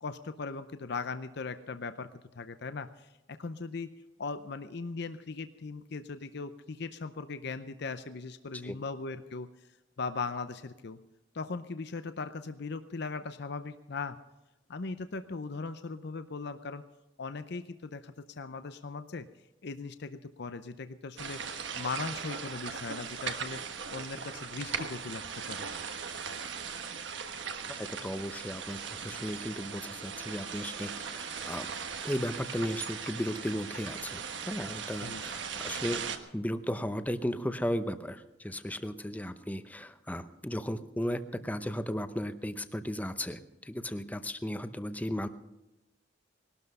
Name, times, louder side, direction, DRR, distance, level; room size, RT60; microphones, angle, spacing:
voice 1, 0.0-2.1 2.3-3.9 4.2-9.5 10.0-11.0 11.3-14.2 14.7-16.8 17.2-19.3 19.6-23.6 23.9-25.7 35.0-35.2, left 4 dB, 60° left, 10 dB, 0.6 m, -39 dB
sound 1, 21.2-36.2, right 6 dB, 60° right, 1.3 m, -39 dB
voice 2, 27.7-31.7 32.0-36.1 36.3-45.3, equal, 10° left, 10 dB, 0.7 m, -35 dB
19.5 x 12.5 x 5.4 m, 1.0 s
head